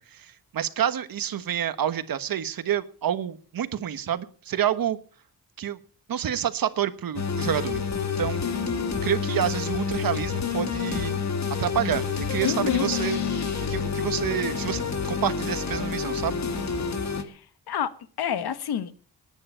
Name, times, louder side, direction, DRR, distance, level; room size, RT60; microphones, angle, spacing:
voice 1, 0.0-5.0 5.6-5.8 6.1-7.8 8.2-8.4 9.0-11.1 11.6-13.2 13.7-16.3, right 10 dB, 65° right, 1.3 m, -28 dB
sound 1, 7.2-17.2, left 6 dB, 45° left, 2.0 m, -28 dB
voice 2, 12.4-12.9 17.2-17.4 17.7-18.9, left 9 dB, 80° left, 1.3 m, -28 dB
19.0 x 9.8 x 5.6 m
cardioid pair, 95°, 38 cm